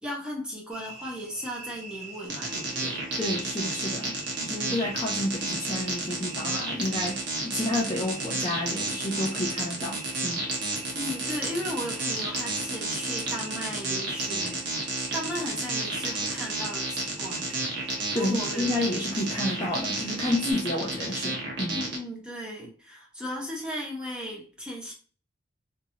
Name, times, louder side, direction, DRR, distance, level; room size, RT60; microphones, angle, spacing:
voice 1, 0.0-3.0 11.0-17.7 18.1-18.7 21.7-24.9, equal, 5° right, 0.8 m, -36 dB
sound 1, 0.7-20.5, right 3 dB, 35° right, 1.3 m, -44 dB
sound 2, 2.3-22.0, right 2 dB, 60° right, 0.9 m, -31 dB
voice 2, 3.2-10.4 18.1-21.8, left 1 dB, 20° left, 0.4 m, -30 dB
2.9 x 2.6 x 2.7 m
head